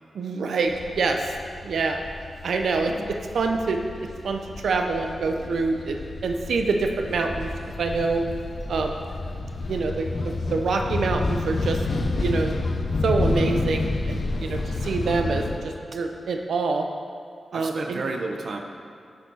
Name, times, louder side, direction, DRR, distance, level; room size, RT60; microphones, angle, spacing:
voice 1, 0.1-1.3 1.6-2.0 2.4-3.8 4.2-6.0 6.2-7.5 7.8-8.2 8.7-9.0 9.7-11.8 12.2-12.5 13.0-16.8 17.5-18.0, right 4 dB, 85° right, 4 dB, 0.7 m, -26 dB
sound 1, 0.7-15.6, left 2 dB, 55° left, 0.8 m, -30 dB
voice 2, 17.5-18.6, right 3 dB, 60° right, 4 dB, 1.0 m, -31 dB
8.6 x 6.6 x 6.3 m, 2.4 s
wide cardioid pair, 100°, 0 cm